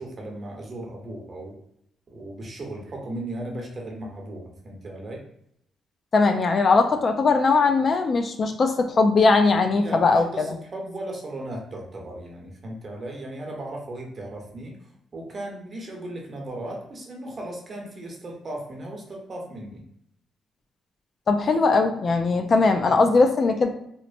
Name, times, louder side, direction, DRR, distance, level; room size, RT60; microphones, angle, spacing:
voice 1, 0.0-1.6 2.1-5.2 9.7-14.8 15.1-19.8, right 1 dB, 40° right, 0 dB, 0.8 m, -36 dB
voice 2, 6.1-10.5 21.3-23.7, left 3 dB, 45° left, 6 dB, 0.3 m, -20 dB
2.9 x 2.1 x 2.4 m, 0.75 s
cardioid pair, 90°, 0 cm